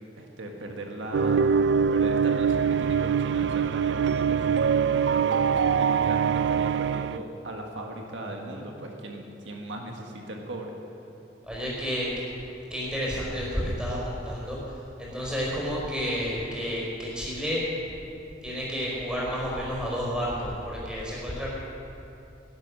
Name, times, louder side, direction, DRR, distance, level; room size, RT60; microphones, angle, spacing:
voice 1, 0.1-1.6 1.9-10.7, right 1 dB, 90° right, 1 dB, 1.7 m, -38 dB
sound 1, 1.1-7.2, right 6 dB, 70° right, 0.3 m, -23 dB
voice 2, 11.4-12.3 12.7-14.6 15.0-17.6 18.4-21.5, equal, 5° right, -6 dB, 4.6 m, -30 dB
17.0 x 11.0 x 6.4 m, 2.8 s
head